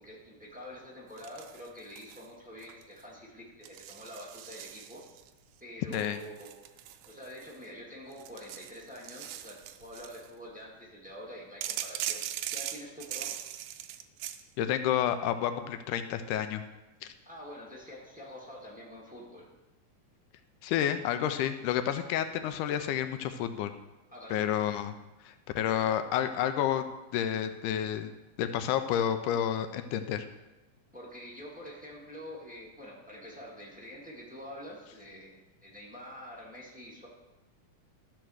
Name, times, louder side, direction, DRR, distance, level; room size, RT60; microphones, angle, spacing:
voice 1, 0.0-5.0 5.6-13.4 17.2-19.5 24.1-24.5 30.9-37.1, equal, 5° right, -4 dB, 0.7 m, -46 dB
sound 1, 1.2-2.3 2.6-3.0 3.6-5.3 5.9-7.7 8.1-10.3 11.6-14.4, right 11 dB, 80° right, 1.6 m, -40 dB
voice 2, 14.6-16.6 20.6-23.7 24.3-24.9 25.3-26.9 27.1-28.1 28.4-30.3, left 10 dB, 85° left, 9 dB, 2.1 m, -30 dB
12.5 x 4.5 x 6.2 m, 1.1 s
omnidirectional pair, 3.6 m